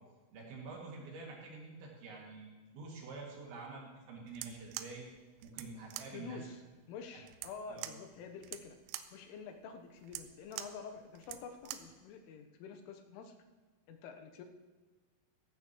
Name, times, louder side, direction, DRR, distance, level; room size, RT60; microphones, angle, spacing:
voice 1, 0.3-5.1 5.4-6.5 7.7-7.9, right 3 dB, 65° right, -2 dB, 4.4 m, -47 dB
sound 1, 4.3-12.0, right 13 dB, 90° right, 3.3 m, -47 dB
voice 2, 6.1-6.6 6.9-8.8 9.1-13.3 13.9-14.4, left 5 dB, 85° left, 5 dB, 3.4 m, -48 dB
15.5 x 15.0 x 3.1 m, 1.3 s
omnidirectional pair, 5.7 m